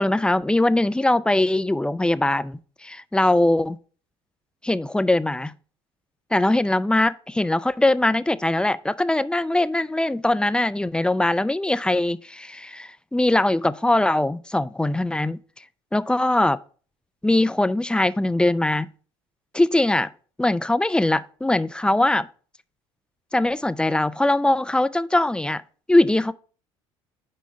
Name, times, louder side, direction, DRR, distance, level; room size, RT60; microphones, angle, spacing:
voice 1, 0.0-3.8 4.6-5.5 6.3-15.4 15.9-16.6 17.2-18.9 19.5-20.1 20.4-22.3 23.3-25.6 25.9-26.3, left 1 dB, 5° left, 0.4 m, -21 dB
5.8 x 5.0 x 5.3 m
hypercardioid pair, 65°, 14 cm